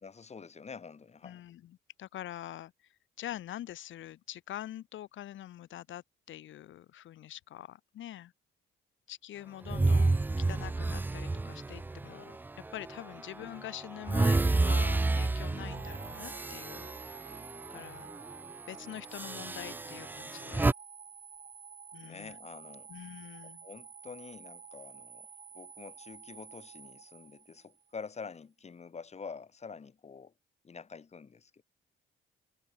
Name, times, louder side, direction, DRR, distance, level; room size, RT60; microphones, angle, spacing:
voice 1, 0.0-1.4 17.7-17.9 22.0-22.9 23.4-25.3 25.5-30.3 30.6-31.6, left 5 dB, 35° left, 1.9 m, -47 dB
voice 2, 1.2-2.7 3.2-8.3 9.1-12.4 12.7-16.9 17.7-18.1 18.7-20.7 21.9-22.4 22.9-23.7, left 12 dB, 75° left, 1.8 m, -44 dB
sound 1, 9.7-13.0 13.4-17.8 18.1-18.3 19.1-20.7, right 3 dB, 10° right, 0.3 m, -30 dB
sound 2, 15.7-27.9, right 7 dB, 45° right, 4.5 m, -50 dB
cardioid pair, 90°, 20 cm